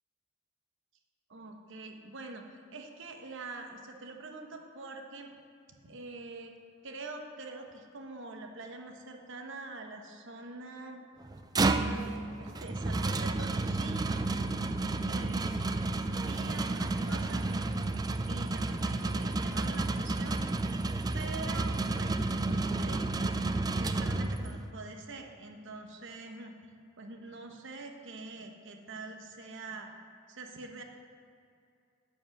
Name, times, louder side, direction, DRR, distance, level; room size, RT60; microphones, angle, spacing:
voice 1, 1.3-5.3 5.8-6.6 6.8-11.0 11.6-14.1 15.0-17.8 18.2-20.4 21.1-23.4 23.8-26.5 27.0-29.9 30.3-30.8, right 3 dB, 60° right, 4 dB, 1.0 m, -45 dB
sound 1, 11.2-24.7, right 2 dB, 20° right, 0.3 m, -31 dB
9.8 x 5.2 x 7.1 m, 2.5 s
head